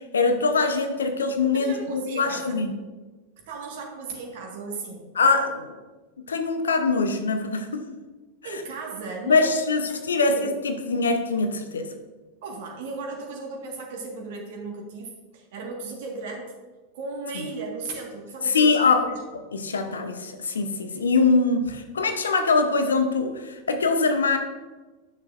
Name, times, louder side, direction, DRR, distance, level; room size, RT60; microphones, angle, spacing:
voice 1, 0.1-2.7 5.2-5.8 6.3-7.8 8.4-8.6 9.3-11.9 18.5-19.0 19.5-24.4, left 4 dB, 70° left, 6 dB, 0.7 m, -23 dB
voice 2, 1.5-2.6 3.5-5.1 8.4-9.6 9.9-10.5 12.4-16.5 16.9-19.2 21.6-21.7, right 3 dB, 50° right, 0 dB, 1.6 m, -36 dB
10.5 x 6.3 x 2.5 m, 1.2 s
figure-of-eight pair, 90°, 0 cm